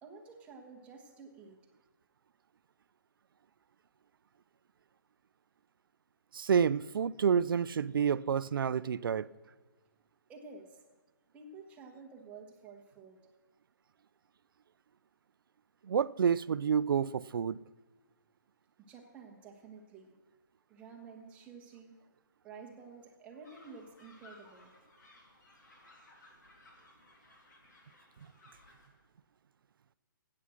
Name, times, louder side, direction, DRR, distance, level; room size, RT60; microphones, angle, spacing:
voice 1, 0.0-1.6 10.3-10.8 11.3-13.2 18.8-20.1 20.7-21.9 22.4-24.7, right 4 dB, 10° right, 1.2 m, -51 dB
voice 2, 6.3-9.3 15.8-17.6, right 7 dB, 85° right, 0.4 m, -29 dB
sound 1, 23.4-28.9, left 2 dB, 60° left, 3.3 m, -60 dB
14.0 x 8.6 x 6.3 m
hypercardioid pair, 165°, 11 cm